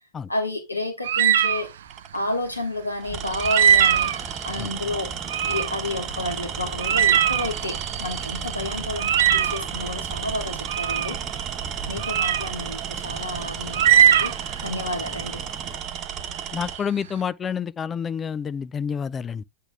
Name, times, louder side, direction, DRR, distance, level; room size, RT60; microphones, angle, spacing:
voice 1, 0.3-1.7 2.1-4.1 4.4-5.1 5.4-11.2 11.9-15.4, left 2 dB, 85° left, 1.7 m, -30 dB
sound 1, 1.0-1.6 3.4-4.3 5.3-5.7 6.1-6.2 6.8-8.2 9.0-9.6 10.7-11.1 12.0-12.5 13.7-14.6, right 9 dB, 60° right, 0.4 m, -20 dB
Tools, 1.9-2.2 3.0-16.8, right 8 dB, 35° right, 0.8 m, -33 dB
sound 2, 3.7-15.8, equal, ahead, 0.8 m, -43 dB
voice 2, 16.5-19.4, left 7 dB, 20° left, 0.4 m, -28 dB
8.1 x 3.7 x 3.5 m
figure-of-eight pair, 90°, 0 cm